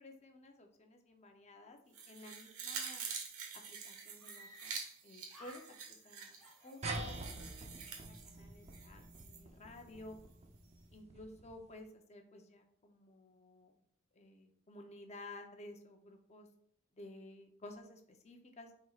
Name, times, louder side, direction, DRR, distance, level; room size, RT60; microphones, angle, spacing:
voice 1, 0.0-3.1 3.7-4.7 5.0-5.6 6.0-6.4 6.6-7.7 8.0-10.2 10.9-13.7 14.1-16.5 17.0-18.7, left 2 dB, 30° left, 4 dB, 0.7 m, -54 dB
sound 1, 1.9-9.4 9.8-9.9, right 5 dB, 75° right, 1.2 m, -47 dB
Screaming, 3.1-3.2 3.4-3.5 4.2-5.0 5.3-6.1 6.4-7.3, equal, 5° left, 2.1 m, -58 dB
sound 2, 6.8-11.7, right 2 dB, 30° right, 0.7 m, -46 dB
9.2 x 4.2 x 2.4 m, 0.71 s
head